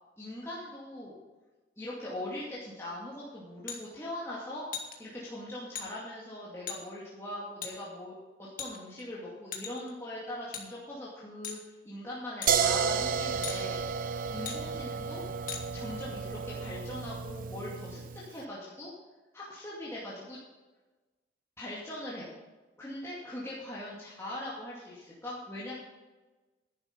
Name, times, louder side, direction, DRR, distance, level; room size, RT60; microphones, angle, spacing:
voice 1, 0.2-1.2 1.8-4.6 5.0-11.6 11.8-15.2 15.5-18.0 18.3-18.9 19.3-20.4 21.6-22.3 22.8-25.8, left 1 dB, 15° left, -7 dB, 2.3 m, -41 dB
sound 1, 3.7-3.8 4.7-4.9 5.7-5.9 6.7-6.8 7.6-7.7 8.6-9.0 9.5-9.9 10.5-10.6 11.4-11.6 12.4-12.5 13.4-13.6 14.4-14.6 15.5-15.6, left 7 dB, 50° left, 1.9 m, -38 dB
sound 2, 12.5-18.3, right 6 dB, 50° right, 0.6 m, -32 dB
11.0 x 10.5 x 5.2 m, 1.2 s
head